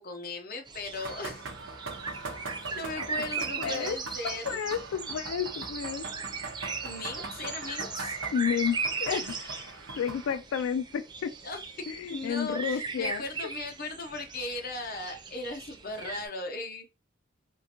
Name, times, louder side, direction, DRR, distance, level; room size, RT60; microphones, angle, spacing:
voice 1, 0.0-1.4 2.7-4.6 6.8-8.2 11.4-16.9, left 2 dB, 45° left, 0.7 m, -38 dB
sound 1, 0.7-16.3, right 5 dB, 20° right, 0.4 m, -38 dB
sound 2, 1.0-10.4, right 3 dB, 75° right, 0.9 m, -42 dB
voice 2, 2.9-4.0 4.2-6.1 8.3-11.3 11.9-13.2, left 7 dB, 90° left, 0.3 m, -32 dB
3.6 x 2.5 x 2.8 m
head